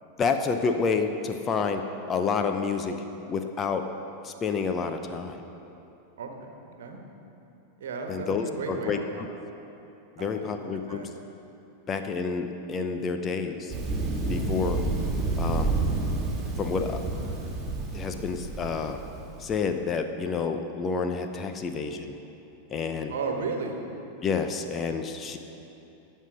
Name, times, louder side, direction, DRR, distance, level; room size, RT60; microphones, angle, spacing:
voice 1, 0.2-3.9 4.2-5.4 8.1-9.0 10.2-11.0 11.9-13.7 14.3-14.8 15.4-15.7 16.6-17.0 17.9-19.0 19.4-22.1 22.7-23.1 24.2-25.4, left 5 dB, 25° left, 7 dB, 0.7 m, -29 dB
voice 2, 6.2-6.5 6.8-7.0 7.8-9.2 10.2-11.1 23.1-23.7, right 4 dB, 60° right, 3 dB, 1.4 m, -34 dB
Thunder, 13.7-19.6, right 3 dB, 15° right, 2.2 m, -29 dB
16.5 x 5.6 x 6.3 m, 3.0 s
figure-of-eight pair, 90°, 0 cm